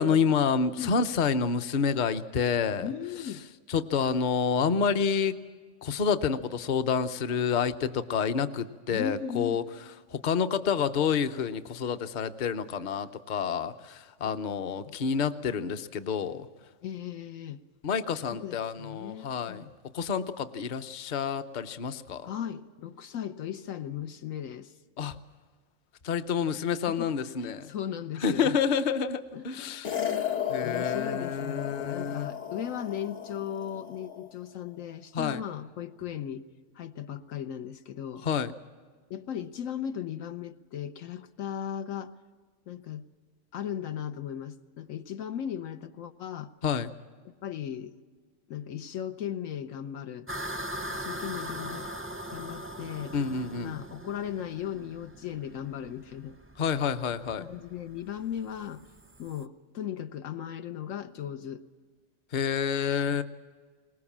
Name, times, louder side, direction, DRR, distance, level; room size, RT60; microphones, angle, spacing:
voice 1, 0.0-2.9 3.7-5.4 5.8-9.6 10.1-16.5 17.8-19.7 19.9-22.3 25.0-25.2 26.0-27.7 28.2-30.0 30.5-32.3 35.1-35.4 38.2-38.5 46.6-46.9 53.1-53.7 56.6-57.5 62.3-63.2, left 6 dB, 45° left, 10 dB, 0.8 m, -28 dB
voice 2, 2.8-3.4 8.9-9.6 14.2-14.4 14.8-15.0 16.8-17.6 18.3-19.7 22.2-24.7 27.0-27.1 27.4-28.6 29.3-29.8 30.6-36.4 36.7-38.3 39.1-42.1 42.7-43.1 43.5-46.5 47.4-47.9 48.5-50.3 50.9-51.9 52.3-53.2 53.6-56.4 57.4-58.8 59.2-61.6, left 9 dB, 90° left, 9 dB, 1.3 m, -37 dB
sound 1, 29.8-34.3, left 9 dB, 65° left, 1.6 m, -34 dB
sound 2, 50.3-59.4, equal, 15° right, 0.5 m, -40 dB
22.0 x 19.5 x 7.3 m, 1.5 s
omnidirectional pair, 1.3 m